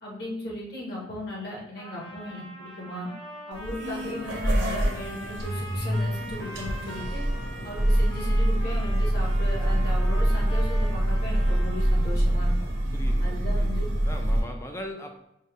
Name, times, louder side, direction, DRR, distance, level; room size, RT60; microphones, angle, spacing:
voice 1, 0.0-3.1 3.5-7.2 7.6-12.5 13.2-13.8 14.3-14.5, left 1 dB, 55° left, -4 dB, 1.3 m, -37 dB
Trumpet, 1.8-12.2, right 1 dB, 30° left, 0.8 m, -43 dB
sound 1, 3.5-14.4, right 1 dB, 70° right, 1.0 m, -25 dB
voice 2, 12.9-15.1, left 1 dB, 15° left, 3 dB, 0.4 m, -39 dB
5.3 x 2.1 x 3.5 m, 0.84 s
head